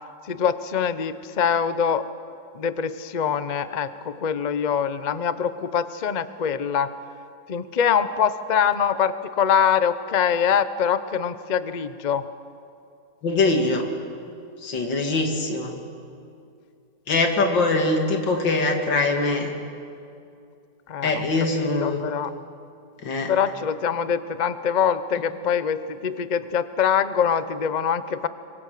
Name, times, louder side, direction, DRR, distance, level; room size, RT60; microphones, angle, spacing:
voice 1, 0.3-2.0 2.5-6.9 7.5-12.2 20.9-21.2 21.5-22.3 23.3-28.3, left 7 dB, 60° left, 13 dB, 0.4 m, -24 dB
voice 2, 13.2-13.9 14.6-15.8 17.1-19.5 21.0-22.0 23.0-23.3, left 3 dB, 80° left, 3 dB, 2.9 m, -22 dB
24.5 x 24.0 x 6.7 m, 2.5 s
omnidirectional pair, 2.0 m